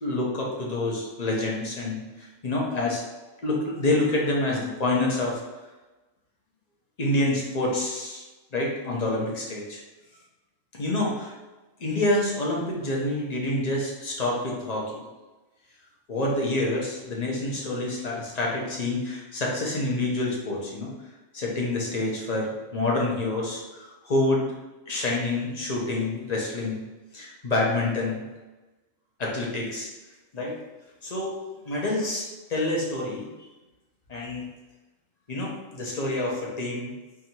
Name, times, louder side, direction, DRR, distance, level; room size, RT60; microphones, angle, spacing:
voice 1, 0.0-3.0 3.4-5.4 7.0-8.2 8.5-9.8 10.7-11.3 11.8-15.0 16.1-20.9 21.3-24.4 24.9-26.8 27.1-28.2 29.2-29.9 30.3-30.6 31.0-31.3 31.6-33.3 34.1-34.4 35.3-36.9, left 2 dB, 35° left, -3 dB, 0.8 m, -27 dB
3.6 x 2.6 x 4.4 m, 1.1 s
omnidirectional pair, 1.4 m